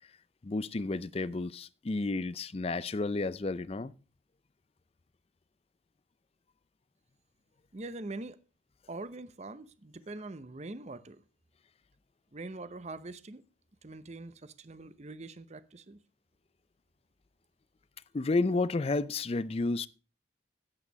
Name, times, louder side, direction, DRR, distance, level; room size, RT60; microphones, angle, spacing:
voice 1, 0.4-3.9 18.1-19.9, left 3 dB, 30° left, 0.4 m, -31 dB
voice 2, 7.7-8.4 8.9-11.2 12.3-13.4 13.8-16.0, right 2 dB, 35° right, 0.7 m, -43 dB
9.7 x 8.3 x 5.2 m
head